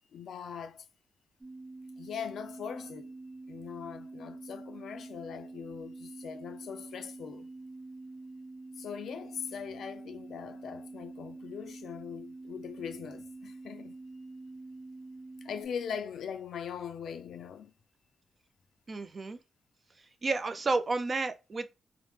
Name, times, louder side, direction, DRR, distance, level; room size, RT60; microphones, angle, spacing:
voice 1, 0.1-0.9 2.0-3.1 3.5-7.5 8.8-14.0 15.4-17.7, left 7 dB, 80° left, 0.4 m, -41 dB
sound 1, 1.4-15.7, right 2 dB, 15° right, 0.9 m, -46 dB
voice 2, 18.9-19.4 20.2-21.7, right 3 dB, 40° right, 0.4 m, -31 dB
2.9 x 2.0 x 3.3 m
cardioid pair, 90°, 0 cm